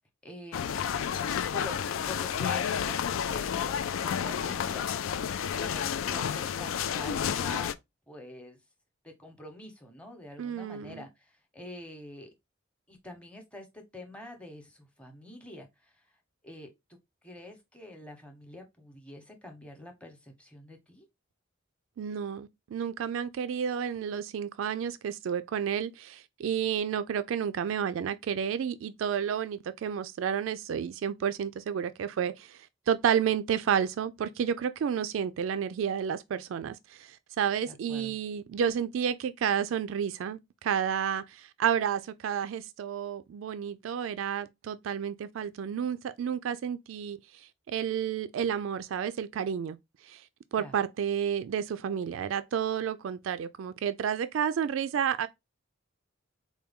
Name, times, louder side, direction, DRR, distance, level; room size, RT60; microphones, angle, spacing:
voice 1, 0.2-0.9 1.5-7.7 8.1-8.6 9.0-12.3 12.9-15.9 16.4-16.7 17.2-21.1 37.7-38.2 50.6-50.7, left 1 dB, 5° left, 0.9 m, -46 dB
sound 1, 0.5-7.7, left 8 dB, 75° left, 0.3 m, -31 dB
voice 2, 10.4-11.0 22.0-32.6 32.9-47.2 47.7-49.8 50.1-50.2 50.5-55.3, right 8 dB, 75° right, 0.3 m, -31 dB
4.4 x 2.2 x 3.5 m
head